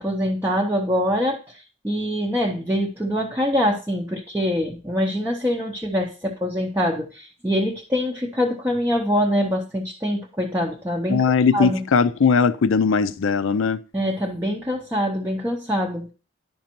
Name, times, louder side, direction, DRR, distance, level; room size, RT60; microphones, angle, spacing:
voice 1, 0.0-11.2 11.5-11.8 13.9-16.1, equal, 10° right, 0.6 m, -24 dB
voice 2, 11.1-13.8, left 5 dB, 75° left, 0.4 m, -19 dB
10.0 x 5.2 x 3.0 m
head